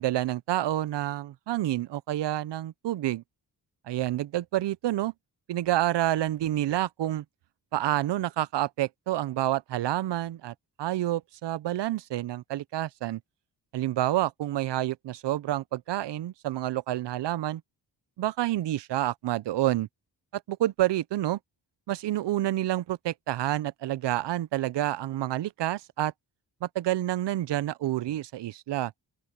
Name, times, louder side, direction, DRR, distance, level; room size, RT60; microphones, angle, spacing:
voice 1, 0.0-3.2 3.9-5.1 5.5-7.2 7.7-13.2 13.7-17.6 18.2-19.9 20.3-21.4 21.9-26.1 26.6-28.9, right 14 dB, 75° right, 0.7 m, -28 dB
open air
cardioid pair, 70°, 43 cm